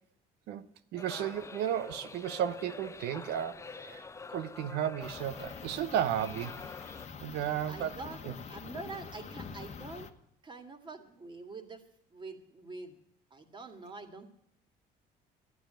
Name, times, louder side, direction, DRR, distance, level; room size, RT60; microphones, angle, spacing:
voice 1, 0.9-4.0 4.3-6.6 7.2-8.0 8.2-8.3, right 10 dB, 80° right, 0.9 m, -33 dB
sound 1, 1.0-7.1, left 4 dB, 15° left, 0.5 m, -46 dB
sound 2, 5.0-10.1, left 6 dB, 40° left, 1.2 m, -45 dB
voice 2, 7.7-10.1 10.4-11.8 12.1-13.0 13.3-14.3, right 3 dB, 30° right, 2.2 m, -45 dB
12.5 x 9.5 x 9.1 m
cardioid pair, 110°, 17 cm